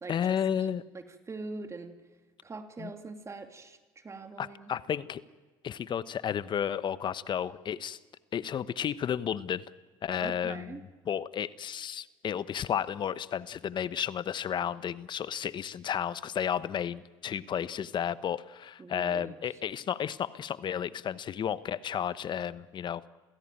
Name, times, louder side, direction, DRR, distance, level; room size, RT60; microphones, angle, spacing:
voice 1, 0.1-0.8 2.8-2.9 4.4-5.2 5.6-8.0 8.3-9.6 10.0-23.0, left 9 dB, 45° left, 16 dB, 1.1 m, -32 dB
voice 2, 0.9-2.0 2.4-4.7 10.2-10.8 18.8-19.4, right 3 dB, 25° right, 7 dB, 2.5 m, -42 dB
28.0 x 16.5 x 9.0 m, 1.3 s
supercardioid pair, 80°, 11 cm